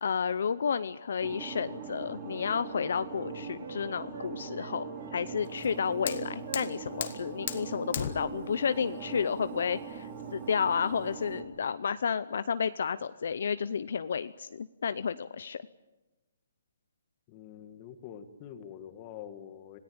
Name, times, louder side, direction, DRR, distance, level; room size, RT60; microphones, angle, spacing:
voice 1, 0.0-15.6, left 6 dB, 55° left, 13 dB, 0.7 m, -31 dB
sound 1, 1.2-11.4, right 6 dB, 20° right, 3.0 m, -41 dB
Wind instrument woodwind instrument, 1.8-3.8 4.1-5.2 5.6-6.2 6.4-7.1 7.4-7.6 7.9-8.5 8.8-9.0, right 5 dB, 70° right, 3.7 m, -50 dB
Fire, 5.4-11.4, left 8 dB, 40° left, 1.7 m, -40 dB
voice 2, 17.3-19.8, left 9 dB, 20° left, 9 dB, 1.7 m, -45 dB
27.0 x 17.5 x 8.7 m, 1.1 s
hypercardioid pair, 175°, 0 cm